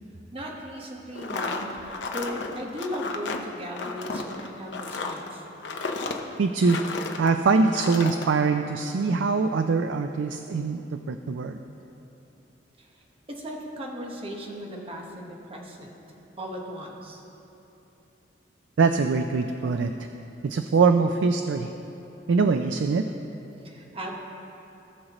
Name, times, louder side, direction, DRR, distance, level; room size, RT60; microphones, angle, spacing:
voice 1, 0.3-5.4 12.8-13.0 13.3-17.2 23.6-24.1, equal, 30° right, 0 dB, 1.1 m, -37 dB
sound 1, 1.1-7.3 7.7-8.3, left 3 dB, 70° left, 0.7 m, -33 dB
voice 2, 6.4-6.8 7.2-11.6 18.8-20.1 20.4-21.7 22.3-23.1, right 4 dB, 90° right, 7 dB, 0.4 m, -23 dB
18.5 x 6.4 x 3.0 m, 3.0 s
head